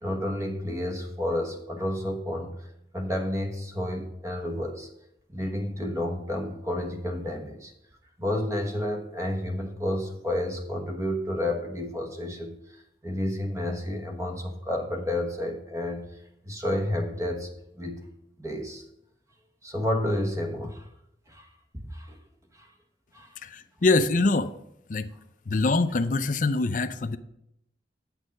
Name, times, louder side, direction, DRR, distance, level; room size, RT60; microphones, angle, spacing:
voice 1, 0.0-2.5 2.9-4.9 5.3-7.7 8.2-16.0 16.4-17.5 17.8-18.0 18.4-18.8 19.6-20.9 21.3-21.5 21.7-22.2 22.5-22.7 23.1-23.3, left 1 dB, 20° right, 3 dB, 1.2 m, -30 dB
voice 2, 23.4-24.5 24.9-25.1 25.5-27.2, left 3 dB, 45° left, 11 dB, 0.5 m, -24 dB
8.9 x 6.4 x 5.2 m, 0.79 s
head